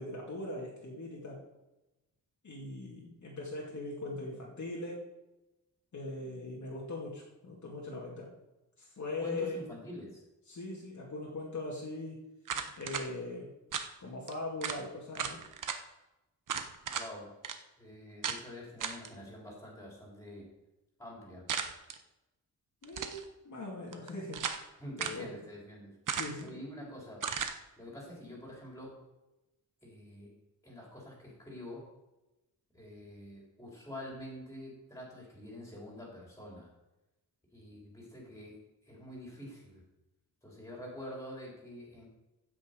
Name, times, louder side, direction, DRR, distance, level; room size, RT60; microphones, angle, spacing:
voice 1, 0.0-1.4 2.4-5.0 5.9-8.3 8.8-9.6 10.5-12.2 12.8-13.5 14.0-15.4 22.8-24.4 25.0-25.3 26.1-26.5, left 2 dB, 50° left, -3 dB, 2.4 m, -40 dB
voice 2, 9.2-10.2 16.9-17.4 17.8-20.5 21.0-21.5 24.8-26.0 26.4-27.2 27.8-29.0 29.8-30.3 30.6-31.9 32.7-36.7 37.5-39.8 40.4-42.0, left 1 dB, 10° left, -3 dB, 4.0 m, -46 dB
sound 1, 12.5-13.1 13.7-13.9 14.3-14.4 14.6-14.8 15.2-15.8 16.5-17.1 17.4-17.6 18.2-18.4 18.8-19.1 21.5-22.0 22.8-23.2 23.9-24.7 25.0-25.2 26.1-26.5 27.2-27.6, right 7 dB, 60° right, 0.9 m, -36 dB
15.5 x 6.2 x 5.2 m, 0.99 s
wide cardioid pair, 165°, 36 cm